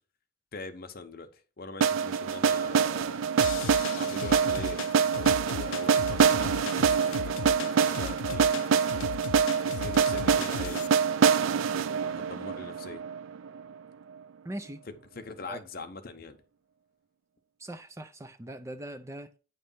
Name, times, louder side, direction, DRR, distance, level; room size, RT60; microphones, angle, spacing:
voice 1, 0.5-3.3 3.9-9.1 9.7-11.0 11.5-13.0 14.9-16.4, left 3 dB, 45° left, 0.8 m, -43 dB
sound 1, 1.8-13.7, right 6 dB, 75° right, 0.4 m, -25 dB
sound 2, 3.4-10.9, left 9 dB, 70° left, 0.3 m, -38 dB
voice 2, 14.4-14.8 15.5-15.6 17.6-19.3, right 1 dB, 15° right, 0.4 m, -40 dB
9.1 x 3.2 x 5.4 m
head